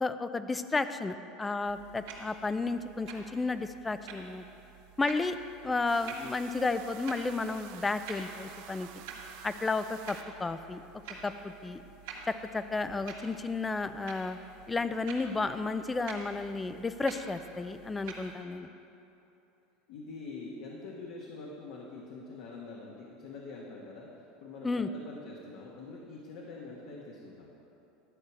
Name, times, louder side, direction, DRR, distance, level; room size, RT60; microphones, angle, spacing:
voice 1, 0.0-4.4 5.0-5.4 5.6-8.9 9.4-10.8 11.2-11.8 12.3-14.4 14.7-18.7 24.6-24.9, left 3 dB, 10° left, 11 dB, 0.3 m, -32 dB
sound 1, 1.6-18.3, right 5 dB, 75° right, 2.0 m, -48 dB
sound 2, 5.9-10.2, right 11 dB, 60° right, 0.5 m, -50 dB
voice 2, 19.9-24.1 24.4-27.5, left 3 dB, 65° left, -3 dB, 1.3 m, -45 dB
11.5 x 4.8 x 7.3 m, 2.9 s
supercardioid pair, 150°, 0 cm